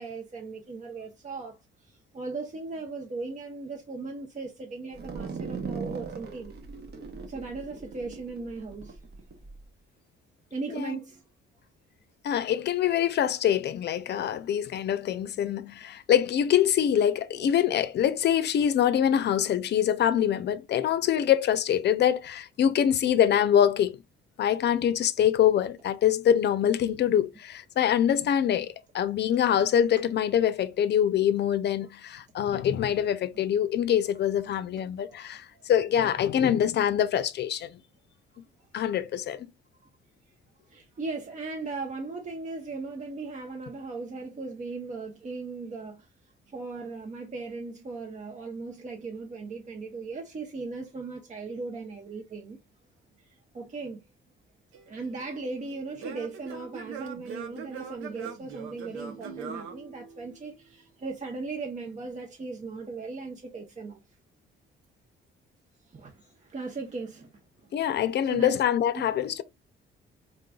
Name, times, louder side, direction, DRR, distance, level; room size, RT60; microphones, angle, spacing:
voice 1, 0.0-1.6 1.9-6.6 7.3-9.0 10.5-11.2 35.5-35.6 40.7-46.1 46.5-52.6 53.5-54.0 54.9-64.0 65.9-67.3 68.2-68.6 68.9-69.0, right 3 dB, 35° right, 0.8 m, -37 dB
sound 1, 4.9-9.6, right 5 dB, 55° right, 1.2 m, -38 dB
voice 2, 12.2-24.0 24.4-37.8 38.7-39.5 67.7-69.4, left 9 dB, 60° left, 0.5 m, -24 dB
Singing / Plucked string instrument, 54.7-60.6, right 6 dB, 85° right, 0.8 m, -42 dB
3.8 x 3.6 x 2.2 m
cardioid pair, 90°, 20 cm